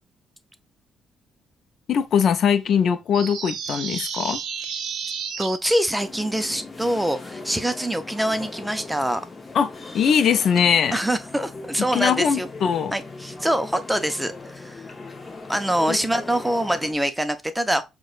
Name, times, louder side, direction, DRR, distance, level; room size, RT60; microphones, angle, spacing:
voice 1, 1.9-4.4 9.5-11.0 11.9-12.9 15.9-16.0, left 7 dB, 65° left, 0.4 m, -21 dB
sound 1, 3.1-5.6, right 6 dB, 75° right, 0.5 m, -31 dB
voice 2, 5.4-9.2 10.9-12.5 12.9-14.8 15.5-17.8, right 1 dB, 5° right, 0.5 m, -24 dB
sound 2, 6.0-16.9, left 3 dB, 30° left, 0.7 m, -39 dB
4.6 x 2.2 x 2.4 m
cardioid pair, 90°, 0 cm